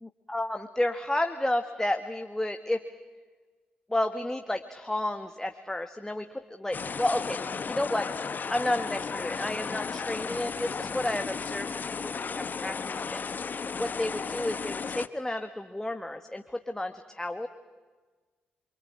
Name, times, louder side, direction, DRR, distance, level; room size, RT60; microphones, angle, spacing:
voice 1, 0.0-2.8 3.9-7.4 7.7-8.1 8.5-12.1 12.6-13.2 13.5-17.5, left 1 dB, 10° left, 6 dB, 1.6 m, -31 dB
sound 1, 6.7-15.1, left 5 dB, 40° left, 1.0 m, -34 dB
27.0 x 24.5 x 8.8 m, 1.4 s
hypercardioid pair, 40°, 5 cm